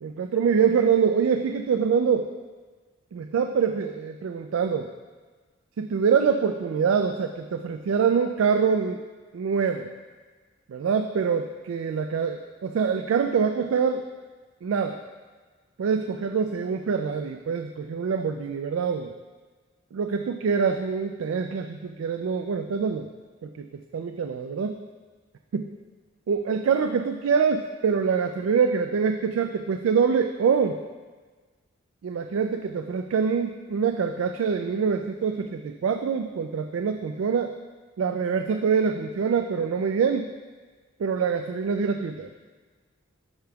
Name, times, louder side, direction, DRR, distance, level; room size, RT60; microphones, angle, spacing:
voice 1, 0.0-2.2 3.1-4.9 5.8-9.0 9.3-9.9 10.7-14.1 14.6-15.0 15.8-19.1 19.9-23.1 23.4-23.7 23.9-24.8 25.5-25.6 26.3-30.8 32.0-37.5 38.0-40.3 41.0-42.3, right 6 dB, 90° right, 6 dB, 0.3 m, -25 dB
12.5 x 5.1 x 2.3 m, 1.4 s
head